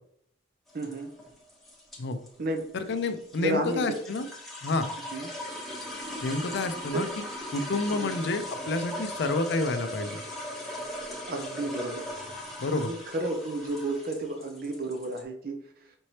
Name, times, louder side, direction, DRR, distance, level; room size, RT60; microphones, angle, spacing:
sound 1, 0.7-15.2, left 1 dB, ahead, 0.9 m, -39 dB
voice 1, 0.7-1.1 2.4-2.6 3.4-4.0 5.1-5.3 6.9-7.1 7.9-8.2 11.3-12.1 12.9-15.9, right 2 dB, 50° right, 4 dB, 0.6 m, -32 dB
voice 2, 2.7-4.3 4.6-4.9 6.2-7.1 7.5-10.2 12.6-12.9, left 3 dB, 55° left, 9 dB, 0.5 m, -29 dB
5.2 x 3.2 x 2.8 m, 0.67 s
head